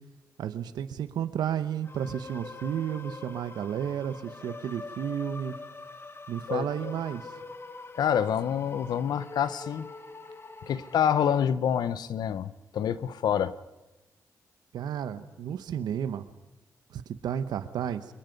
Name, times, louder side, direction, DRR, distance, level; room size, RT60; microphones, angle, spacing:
voice 1, 0.4-5.5 6.3-7.3 14.7-16.3 16.9-18.0, right 9 dB, 85° right, 12 dB, 1.1 m, -32 dB
sound 1, 1.8-11.4, left 3 dB, 35° left, 1.5 m, -44 dB
voice 2, 6.5-6.9 7.9-9.9 10.6-13.6, left 8 dB, 80° left, 15 dB, 1.0 m, -27 dB
24.0 x 22.0 x 5.4 m, 1.1 s
cardioid pair, 60°, 7 cm